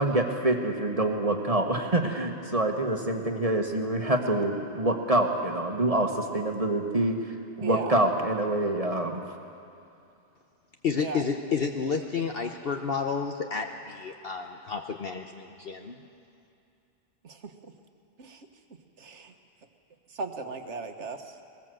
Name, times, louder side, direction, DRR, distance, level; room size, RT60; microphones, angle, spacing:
voice 1, 0.0-7.2 7.6-9.2, right 1 dB, 30° right, 3 dB, 1.4 m, -26 dB
voice 2, 7.6-7.9 10.9-11.2 17.2-17.5 18.2-18.5 19.0-19.3 20.1-21.3, right 4 dB, 70° right, 6 dB, 1.5 m, -36 dB
voice 3, 10.8-16.0, left 5 dB, 55° left, 4 dB, 1.1 m, -31 dB
21.5 x 19.5 x 7.7 m, 2.6 s
omnidirectional pair, 1.2 m